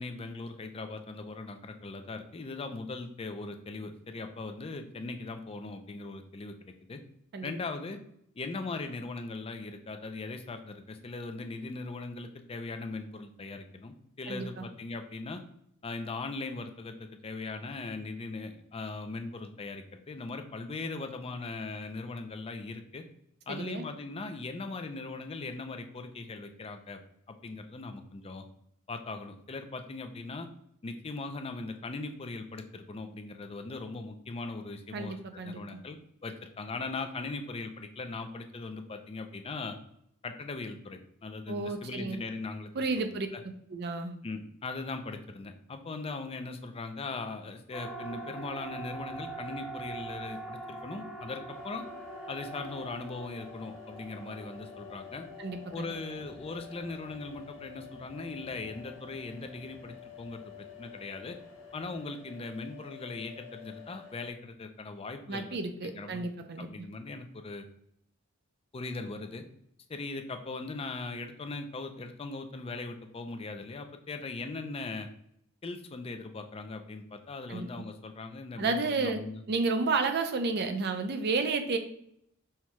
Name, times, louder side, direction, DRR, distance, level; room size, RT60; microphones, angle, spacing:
voice 1, 0.0-7.0 7.4-8.0 8.4-15.4 15.8-23.0 23.5-27.0 27.3-28.4 28.9-30.5 30.8-39.8 40.2-42.7 43.0-43.1 43.3-43.4 44.2-51.9 52.3-55.3 55.7-61.4 61.7-65.5 65.8-66.3 66.6-67.6 68.7-69.4 69.9-75.1 75.6-79.4, left 3 dB, 30° left, 6 dB, 0.4 m, -39 dB
voice 2, 14.3-14.6 23.5-23.8 34.9-35.8 41.5-42.2 42.8-43.3 43.7-44.2 55.4-55.9 65.3-66.9 77.5-77.8 78.6-79.2 79.5-81.8, right 3 dB, 50° right, 7 dB, 0.5 m, -31 dB
Siren, 47.7-62.0, right 2 dB, ahead, 0.8 m, -45 dB
sound 1, 51.5-64.3, left 8 dB, 65° left, 1.2 m, -50 dB
5.6 x 2.3 x 3.0 m, 0.72 s
head